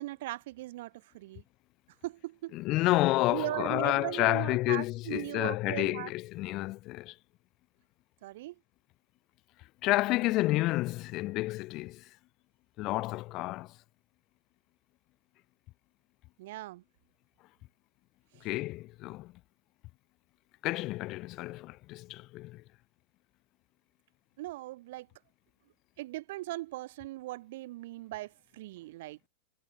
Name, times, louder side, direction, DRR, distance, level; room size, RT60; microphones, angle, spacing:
voice 1, 0.0-1.4 2.0-2.6 3.3-6.1 8.2-8.5 16.4-16.8 18.3-18.4 24.4-25.1 26.0-29.2, right 17 dB, 55° right, 1.5 m, -39 dB
voice 2, 2.5-7.2 9.8-12.1 12.8-13.8 18.4-19.3 20.6-22.6, left 19 dB, 40° left, 2.4 m, -30 dB
figure-of-eight pair, 90°, 0 cm